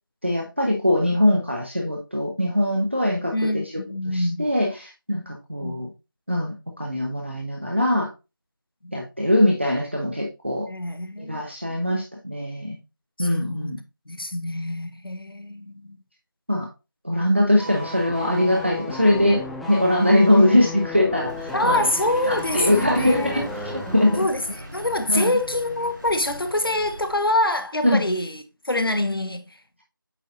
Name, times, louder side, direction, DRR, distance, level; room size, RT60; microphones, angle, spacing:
voice 1, 0.2-3.6 4.1-5.9 6.3-8.1 8.9-10.7 11.2-12.8 13.2-13.8 16.5-16.7 17.0-21.9 22.3-24.3 25.1-25.4 27.8-28.0, left 1 dB, 30° right, 0.8 m, -22 dB
voice 2, 3.3-4.5 5.6-5.8 8.8-9.0 10.7-11.4 11.7-11.8 13.2-13.8 14.1-16.0 21.5-23.5 24.2-24.4 24.7-29.4, left 1 dB, 85° left, 1.2 m, -25 dB
sound 1, 17.6-24.3 24.5-24.7, left 3 dB, ahead, 0.4 m, -35 dB
Vehicle, 21.1-27.5, right 1 dB, 60° right, 2.8 m, -38 dB
8.3 x 4.4 x 2.6 m
figure-of-eight pair, 180°, 12 cm